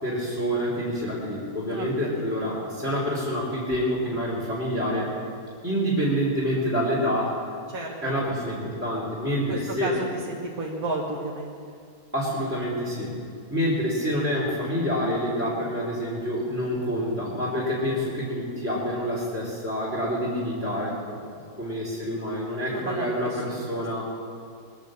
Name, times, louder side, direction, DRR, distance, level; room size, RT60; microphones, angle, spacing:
voice 1, 0.0-5.1 5.6-7.4 8.0-9.9 12.1-13.2 13.5-21.2 21.6-24.1, equal, 10° right, -7 dB, 2.9 m, -27 dB
voice 2, 1.7-2.3 7.7-8.2 9.5-11.6 22.6-23.6, right 2 dB, 70° right, -2 dB, 1.9 m, -33 dB
21.5 x 8.8 x 7.4 m, 2.3 s
omnidirectional pair, 1.6 m